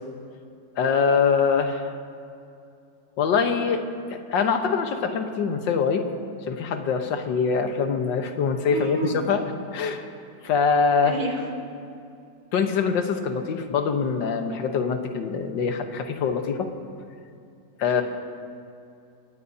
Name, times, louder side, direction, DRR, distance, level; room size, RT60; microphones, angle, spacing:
voice 1, 0.8-1.9 3.2-3.8 4.1-6.1 6.5-9.0 9.3-9.4 9.7-10.0 10.4-11.2 12.5-16.7 17.8-18.0, left 5 dB, 80° left, 6 dB, 1.8 m, -23 dB
voice 2, 8.7-9.2 11.0-11.5, right 1 dB, 65° right, -2 dB, 2.9 m, -28 dB
25.5 x 17.5 x 2.8 m, 2.5 s
omnidirectional pair, 1.9 m